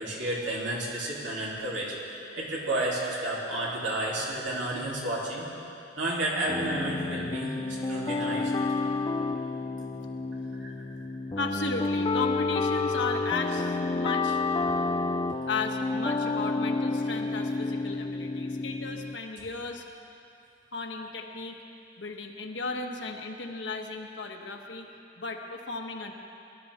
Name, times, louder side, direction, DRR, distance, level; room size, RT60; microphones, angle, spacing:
voice 1, 0.0-5.5 6.0-8.5 10.6-10.7, right 1 dB, 85° right, -5 dB, 3.3 m, -31 dB
sound 1, 6.5-19.2, left 3 dB, 25° left, 0.4 m, -30 dB
voice 2, 11.4-14.4 15.5-19.8 20.7-21.6 22.0-24.9 25.2-26.1, left 3 dB, 75° left, 3 dB, 1.2 m, -35 dB
22.0 x 12.0 x 3.6 m, 2.6 s
head